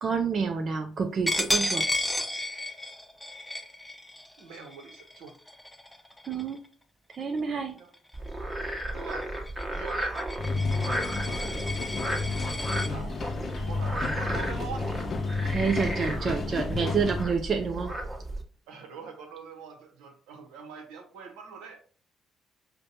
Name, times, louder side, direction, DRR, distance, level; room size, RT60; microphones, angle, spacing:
voice 1, 0.0-1.9 6.2-6.6 7.1-7.7 15.5-17.9, right 5 dB, 50° right, 5 dB, 0.5 m, -28 dB
Coin (dropping), 1.3-6.7 7.1-7.4 7.8-12.9, left 1 dB, 10° left, 0.6 m, -33 dB
voice 2, 4.4-5.4 7.7-7.9 8.8-9.3 9.7-10.2 11.2-11.7 12.5-13.2 13.7-15.0 18.7-21.8, right 5 dB, 80° right, 4 dB, 0.8 m, -44 dB
Frog, 8.1-18.4, right 1 dB, 25° right, 1.1 m, -34 dB
sound 1, 10.4-17.2, left 4 dB, 50° left, 0.5 m, -32 dB
5.0 x 2.2 x 2.8 m, 0.43 s
supercardioid pair, 60°, 0 cm